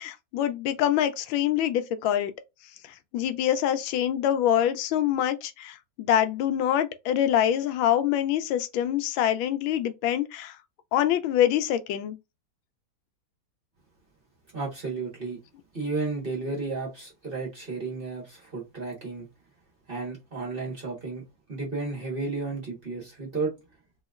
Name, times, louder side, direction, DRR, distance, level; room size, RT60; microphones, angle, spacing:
voice 1, 0.0-2.3 3.1-10.6 10.9-12.2, left 11 dB, 85° left, 1.4 m, -25 dB
voice 2, 14.5-15.4 15.7-19.3 19.9-23.5, right 3 dB, 30° right, 1.2 m, -33 dB
4.0 x 2.8 x 2.4 m
omnidirectional pair, 2.2 m